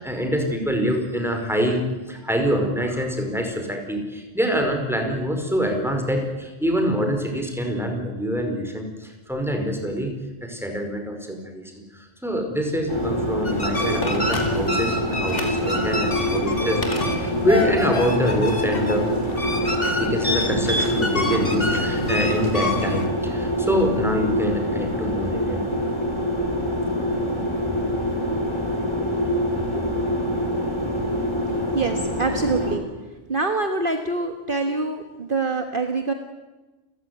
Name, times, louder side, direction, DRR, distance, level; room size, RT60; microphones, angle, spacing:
voice 1, 0.0-10.1 10.4-11.6 11.9-16.8 17.1-19.0 20.0-25.6 27.6-27.7 29.7-29.9, equal, ahead, 4 dB, 5.0 m, -25 dB
sound 1, 12.9-32.8, equal, 20° left, 3.9 m, -25 dB
sound 2, 13.4-23.1, left 1 dB, 50° left, 3.0 m, -27 dB
Telephone, 14.0-14.9 15.3-15.7 16.8-17.7 18.0-18.1, left 1 dB, 65° left, 3.9 m, -32 dB
voice 2, 31.7-32.8 33.3-36.1, right 3 dB, 45° right, 5 dB, 1.7 m, -25 dB
29.5 x 15.5 x 9.6 m, 1.2 s
omnidirectional pair, 1.3 m